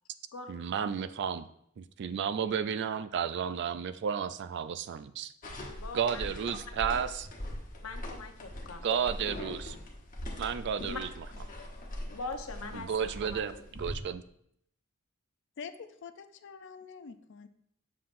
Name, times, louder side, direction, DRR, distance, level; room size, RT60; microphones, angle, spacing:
voice 1, 0.5-1.5 1.8-5.3 5.9-7.3 8.8-9.8 10.4-11.1 12.7-14.2, right 7 dB, 55° right, 12 dB, 0.3 m, -32 dB
sound 1, 5.4-14.0, left 1 dB, 40° left, 1.1 m, -41 dB
voice 2, 5.8-6.2 7.8-9.1 10.8-11.0 12.1-13.6, left 3 dB, 75° left, 5 dB, 0.8 m, -42 dB
voice 3, 15.6-17.5, left 6 dB, 60° left, 10 dB, 0.5 m, -46 dB
7.3 x 5.7 x 2.6 m, 0.71 s
head